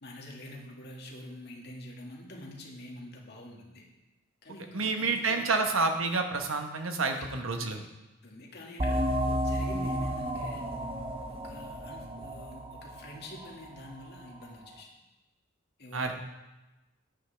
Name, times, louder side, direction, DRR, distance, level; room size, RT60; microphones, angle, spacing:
voice 1, 0.0-3.8 4.4-5.6 7.1-7.2 8.2-9.1 9.4-10.6 11.3-14.9 15.8-16.1, left 1 dB, 55° left, -1 dB, 1.9 m, -46 dB
voice 2, 4.7-7.9 15.9-16.1, right 3 dB, 80° right, 5 dB, 1.1 m, -29 dB
sound 1, 8.8-14.1, equal, 30° right, 0.7 m, -32 dB
10.5 x 9.2 x 3.4 m, 1.1 s
head